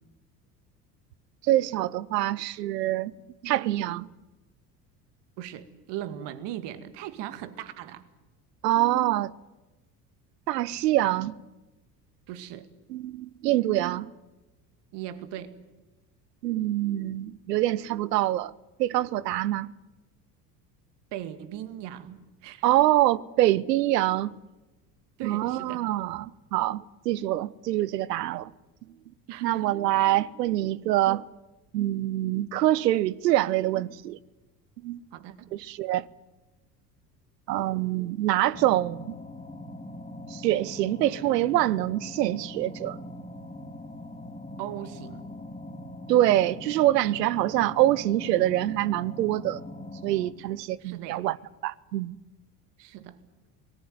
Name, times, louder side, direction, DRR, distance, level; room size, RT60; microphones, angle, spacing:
voice 1, 1.5-3.1 3.4-4.1 8.6-9.3 10.5-11.3 12.9-14.1 16.4-18.5 18.8-19.7 22.6-24.4 25.2-28.5 29.4-31.2 31.7-34.2 34.8-35.0 35.5-36.1 37.5-39.1 40.3-43.0 46.1-49.6 50.0-51.4 51.6-52.2, right 14 dB, 80° right, 0.8 m, -25 dB
voice 2, 5.4-8.0 12.3-12.7 14.9-15.6 21.1-22.7 25.2-25.9 29.3-29.7 29.9-30.2 35.1-35.5 44.6-45.3 50.8-51.2 52.8-53.2, right 12 dB, 55° right, 2.2 m, -39 dB
sound 1, 38.5-50.3, left 1 dB, 15° left, 2.6 m, -42 dB
26.5 x 19.0 x 9.3 m
hypercardioid pair, 70°, 48 cm